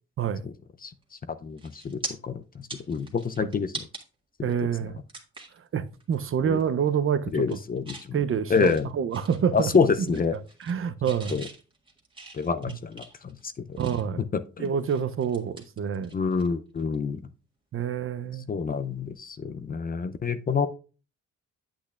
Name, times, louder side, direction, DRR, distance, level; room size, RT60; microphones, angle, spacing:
sound 1, 1.0-1.2 1.6-2.1 2.5-4.0 4.5-4.6 5.1-5.6 6.0-6.2 6.5-7.0 7.3-8.1 8.5-9.8 10.1-10.8 11.0-14.2 14.6-16.5 16.8-17.0 18.8-19.0, right 2 dB, 15° right, 1.8 m, -42 dB
voice 1, 1.4-3.8 6.5-6.6 7.3-8.2 8.5-8.9 9.5-10.4 11.3-11.5 12.3-13.4 13.7-13.8 14.2-14.3 14.6-14.7 16.1-17.2 18.5-20.7, left 5 dB, 30° left, 0.5 m, -27 dB
voice 2, 4.4-5.0 5.7-7.6 8.1-9.7 10.6-11.4 12.7-12.8 13.8-14.2 14.6-16.1 17.7-18.5, right 7 dB, 45° right, 0.6 m, -27 dB
8.6 x 8.0 x 2.4 m
cardioid pair, 90°, 30 cm